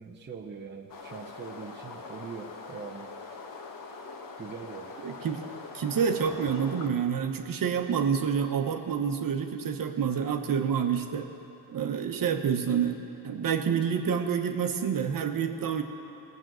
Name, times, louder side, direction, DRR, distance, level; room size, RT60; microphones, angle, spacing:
voice 1, 0.0-3.2 4.4-4.9, right 5 dB, 25° right, 1 dB, 0.8 m, -42 dB
sound 1, 0.9-6.9, left 4 dB, 50° left, 1.4 m, -43 dB
voice 2, 5.0-5.4 5.7-11.3 11.7-13.0 13.2-15.8, right 7 dB, 50° right, 5 dB, 1.1 m, -28 dB
18.0 x 6.3 x 7.5 m, 2.8 s
cardioid pair, 90°, 43 cm